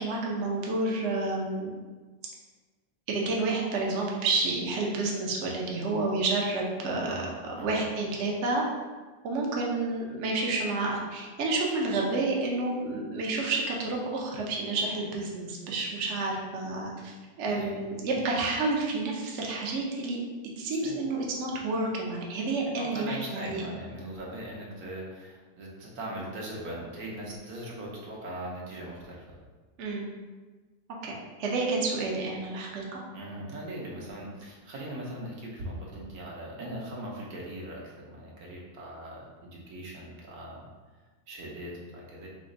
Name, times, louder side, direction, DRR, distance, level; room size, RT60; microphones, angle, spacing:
voice 1, 0.0-1.7 3.1-8.6 9.2-20.2 20.6-23.7 29.8-30.1 31.0-31.1 31.4-33.0, right 3 dB, 60° right, -2 dB, 0.9 m, -30 dB
voice 2, 7.0-7.8 17.5-17.8 18.1-18.2 20.8-21.0 22.8-29.2 33.1-40.7 41.3-42.3, right 1 dB, 80° right, -3 dB, 1.4 m, -40 dB
3.4 x 3.0 x 3.8 m, 1.3 s
omnidirectional pair, 1.6 m